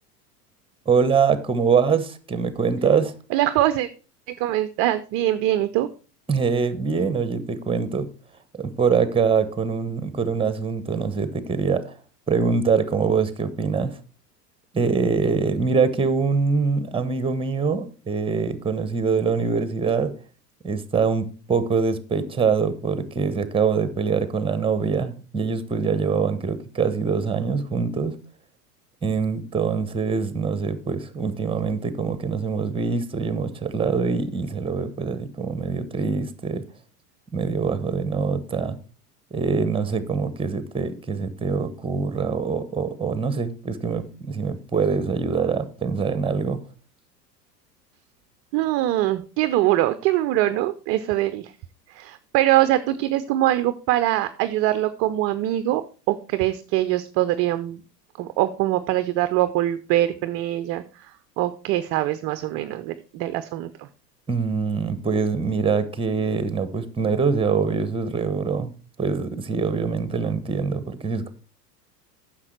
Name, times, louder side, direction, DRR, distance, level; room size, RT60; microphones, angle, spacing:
voice 1, 0.9-3.1 6.3-8.1 8.6-11.9 12.3-14.0 14.7-20.1 20.6-28.2 29.0-36.6 37.3-38.8 39.3-46.6 64.3-71.3, right 5 dB, 10° right, 1.0 m, -24 dB
voice 2, 3.3-3.9 4.3-5.9 48.5-51.5 51.9-57.8 58.2-63.9, right 14 dB, 30° right, 0.5 m, -23 dB
9.7 x 6.6 x 4.5 m
figure-of-eight pair, 90°, 49 cm